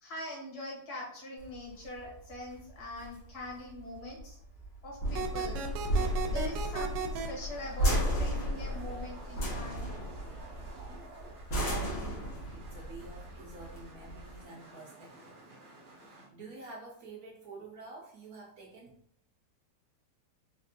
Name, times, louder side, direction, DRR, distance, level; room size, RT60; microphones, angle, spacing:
voice 1, 0.0-4.4 4.8-5.6 6.3-9.9, left 1 dB, 60° left, -3 dB, 1.7 m, -43 dB
sound 1, 1.4-14.4, equal, 85° left, 1.9 m, -34 dB
sound 2, 5.1-7.3, right 5 dB, 90° right, 1.3 m, -34 dB
sound 3, 5.2-16.3, right 2 dB, 50° right, 0.6 m, -52 dB
voice 2, 11.6-12.2 12.5-15.4 15.9-19.0, right 3 dB, 70° right, -1 dB, 1.0 m, -48 dB
4.0 x 2.4 x 2.7 m, 0.64 s
omnidirectional pair, 1.9 m